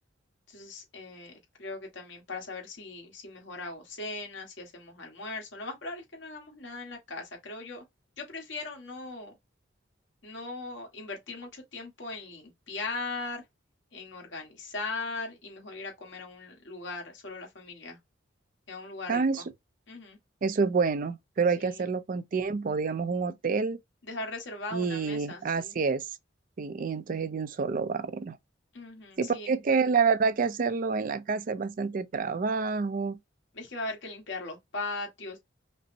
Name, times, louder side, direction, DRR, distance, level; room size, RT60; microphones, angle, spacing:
voice 1, 0.5-7.8 8.2-9.3 10.2-13.4 13.9-18.0 18.7-19.4 19.9-20.2 21.6-21.9 24.0-25.8 28.7-29.5 33.5-35.4, left 3 dB, 70° left, 1.4 m, -39 dB
voice 2, 19.1-19.4 20.4-23.8 24.7-26.0 26.6-28.4 29.2-33.2, right 5 dB, 45° right, 0.4 m, -28 dB
5.3 x 2.0 x 2.6 m
head